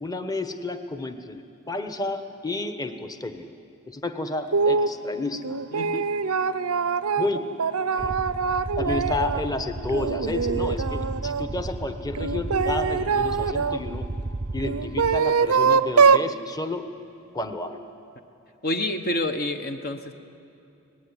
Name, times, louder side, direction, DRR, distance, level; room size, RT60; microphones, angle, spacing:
voice 1, 0.0-3.5 3.9-5.6 7.2-7.4 8.0-8.1 8.8-14.1 14.5-16.9 17.3-17.8, left 2 dB, 15° left, 8 dB, 1.2 m, -31 dB
sound 1, 4.5-4.9 5.4-9.5 9.9-11.5 12.1-13.8 14.6-16.3, right 5 dB, 85° right, 0.7 m, -23 dB
voice 2, 5.7-6.0 18.6-20.1, left 1 dB, 45° left, 7 dB, 1.0 m, -28 dB
sound 2, 8.0-15.2, right 2 dB, 25° right, 0.5 m, -33 dB
24.5 x 19.5 x 9.8 m, 2.9 s
head